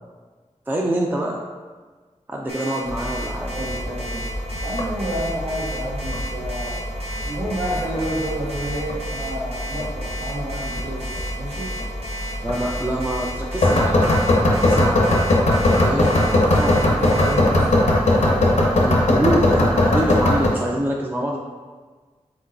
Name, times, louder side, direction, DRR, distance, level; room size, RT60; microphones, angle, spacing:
voice 1, 0.7-1.4 2.3-3.5 12.4-15.1 15.7-16.1 16.6-16.7 18.2-18.4 18.8-21.4, right 1 dB, 15° right, -2 dB, 0.4 m, -25 dB
Alarm, 2.5-17.3, equal, 55° right, 1.0 m, -34 dB
sound 1, 2.8-20.5, left 1 dB, 70° left, 0.7 m, -21 dB
voice 2, 3.5-4.3 4.6-6.8 7.3-11.8 15.6-18.6, right 1 dB, 80° right, -7 dB, 0.8 m, -30 dB
4.6 x 3.7 x 2.6 m, 1.4 s
wide cardioid pair, 110°, 12 cm